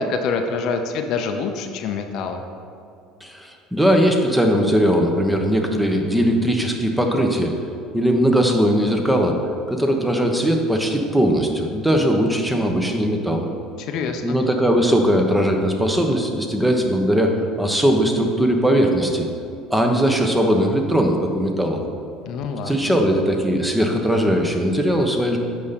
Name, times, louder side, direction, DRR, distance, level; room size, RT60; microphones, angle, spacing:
voice 1, 0.0-2.4 13.8-14.4 22.3-22.9, left 4 dB, 60° left, 6 dB, 0.6 m, -26 dB
voice 2, 3.2-7.5 7.9-9.4 9.7-13.5 14.2-19.2 19.7-21.8 22.6-25.4, equal, 5° right, 3 dB, 1.1 m, -19 dB
8.4 x 5.6 x 4.2 m, 2.5 s
hypercardioid pair, 75°, 0 cm